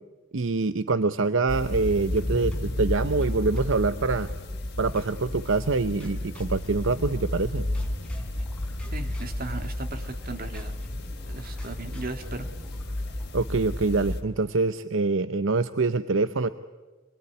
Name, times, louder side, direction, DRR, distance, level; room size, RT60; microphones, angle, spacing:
voice 1, 0.3-4.3 4.8-7.6 13.3-16.5, right 3 dB, 65° right, 12 dB, 0.8 m, -25 dB
sound 1, 1.5-14.2, left 1 dB, 55° left, 2.8 m, -32 dB
sound 2, 2.2-2.8 3.2-4.4 5.0-5.5 6.0-7.5 7.7-13.4, equal, 5° left, 5.2 m, -50 dB
voice 2, 8.9-10.8 11.3-12.5, right 3 dB, 45° right, 7 dB, 2.2 m, -37 dB
27.5 x 21.5 x 9.7 m, 1.3 s
head